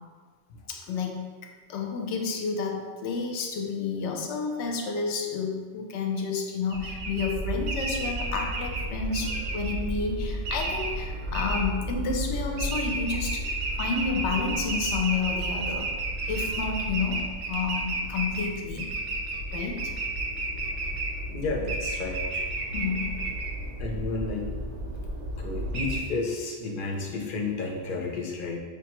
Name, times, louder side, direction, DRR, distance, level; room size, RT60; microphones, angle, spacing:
voice 1, 0.7-1.3 1.7-15.9 16.3-18.9 19.5-19.9 22.7-23.3, left 4 dB, 85° left, 2 dB, 0.9 m, -30 dB
sound 1, 6.7-26.0, right 2 dB, 90° right, 0.9 m, -31 dB
voice 2, 21.3-22.5 23.8-24.5 25.4-28.6, left 3 dB, 60° left, 1 dB, 0.7 m, -31 dB
4.9 x 2.2 x 2.9 m, 1.5 s
omnidirectional pair, 1.1 m